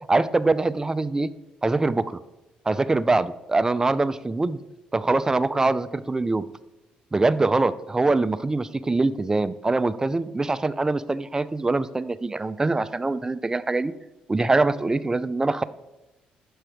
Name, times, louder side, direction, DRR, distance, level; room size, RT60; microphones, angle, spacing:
voice 1, 0.1-1.3 1.6-2.0 2.7-4.6 4.9-6.4 7.1-13.9 14.3-15.6, right 3 dB, 20° right, 14 dB, 0.4 m, -23 dB
7.1 x 4.5 x 5.0 m, 1.0 s
supercardioid pair, 75°, 3 cm